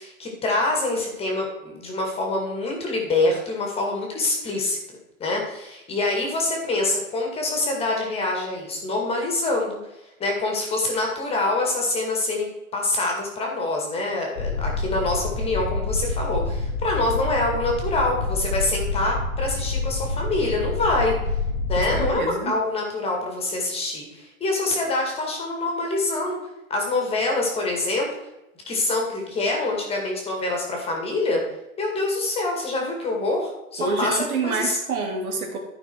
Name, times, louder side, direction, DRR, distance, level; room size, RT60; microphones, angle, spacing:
voice 1, 0.0-4.8 5.2-9.8 10.2-21.1 21.7-26.4 26.7-28.1 28.7-31.4 31.8-34.8, left 2 dB, 15° left, 1 dB, 2.1 m, -25 dB
sound 1, 14.4-22.1, left 3 dB, 85° left, 2.0 m, -27 dB
voice 2, 21.8-22.6 33.8-35.6, right 4 dB, 85° right, 0 dB, 3.0 m, -27 dB
13.0 x 5.6 x 4.7 m, 0.97 s
hypercardioid pair, 150°, 42 cm